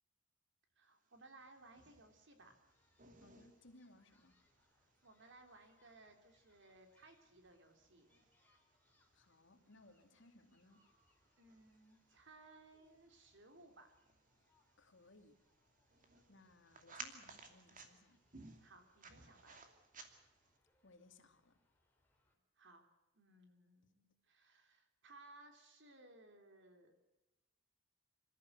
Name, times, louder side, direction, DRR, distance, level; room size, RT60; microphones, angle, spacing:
voice 1, 0.8-2.5 5.0-8.1 11.4-13.9 18.6-19.6 22.6-22.8 23.1-26.9, right 2 dB, 60° right, 6 dB, 3.6 m, -62 dB
sound 1, 1.1-20.6, right 4 dB, 40° right, 2.6 m, -61 dB
sound 2, 2.6-22.4, left 2 dB, 10° left, 3.8 m, -79 dB
voice 2, 3.2-4.4 9.1-10.9 14.8-15.4 16.3-18.2 20.8-21.6, left 2 dB, 65° left, 6 dB, 2.6 m, -64 dB
27.0 x 14.0 x 8.1 m, 0.99 s
head